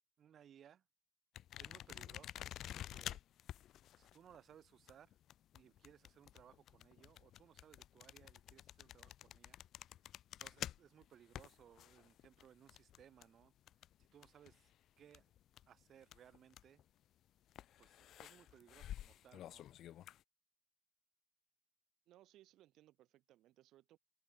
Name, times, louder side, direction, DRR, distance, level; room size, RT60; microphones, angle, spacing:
voice 1, 0.2-0.8 1.6-3.2 4.0-5.2 5.5-9.6 10.4-13.5 14.0-14.7 15.0-15.3 15.7-16.8 17.8-19.7, right 9 dB, 65° right, 2.4 m, -64 dB
sound 1, 1.4-14.7 15.0-16.8 17.5-20.2, left 12 dB, 75° left, 0.4 m, -51 dB
voice 2, 22.1-24.0, right 14 dB, 85° right, 1.1 m, -66 dB
cardioid pair, 90°, 0 cm